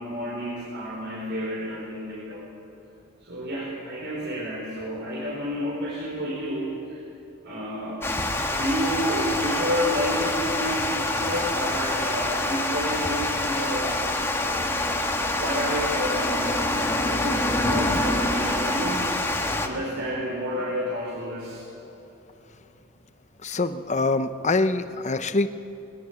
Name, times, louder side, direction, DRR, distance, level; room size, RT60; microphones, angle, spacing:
voice 1, 0.0-2.4 3.2-7.0 7.4-8.1 8.5-14.1 14.4-14.7 15.4-19.1 19.6-21.7, equal, 60° right, -5 dB, 4.6 m, -30 dB
Water, 8.0-19.7, left 1 dB, 10° left, 1.6 m, -26 dB
voice 2, 23.4-25.5, left 3 dB, 35° left, 10 dB, 0.8 m, -24 dB
20.5 x 20.5 x 7.1 m, 2.9 s
head